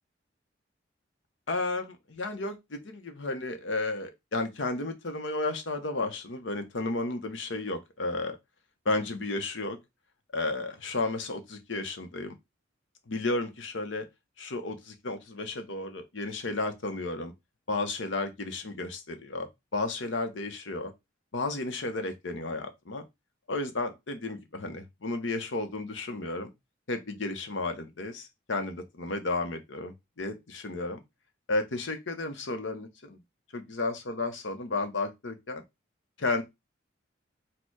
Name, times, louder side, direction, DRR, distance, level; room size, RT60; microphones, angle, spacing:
voice 1, 1.5-8.4 8.8-9.8 10.3-12.4 13.1-14.1 14.4-17.3 17.7-20.9 21.3-23.0 23.5-26.5 26.9-31.0 31.5-33.2 33.5-35.6 36.2-36.4, left 2 dB, 75° left, 0.9 m, -33 dB
4.4 x 2.3 x 4.6 m
head